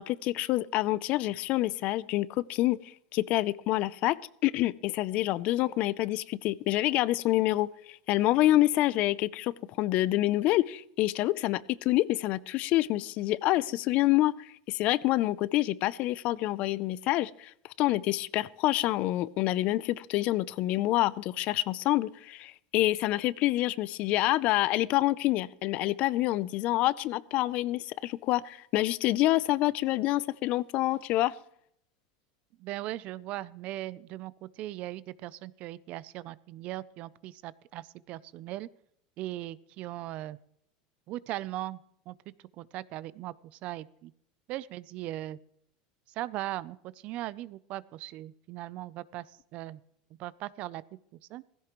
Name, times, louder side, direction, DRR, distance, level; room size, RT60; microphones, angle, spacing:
voice 1, 0.0-4.2 4.4-17.5 17.8-31.3, left 16 dB, 45° left, 20 dB, 0.5 m, -27 dB
voice 2, 32.6-38.7 39.2-40.4 41.1-41.8 42.1-42.2 42.6-43.3 43.6-44.1 44.5-45.4 46.2-46.8 47.0-49.3 49.5-49.8 50.2-50.8 51.3-51.4, right 15 dB, 45° right, 20 dB, 0.5 m, -38 dB
16.5 x 15.5 x 3.1 m, 0.72 s
supercardioid pair, 145°, 3 cm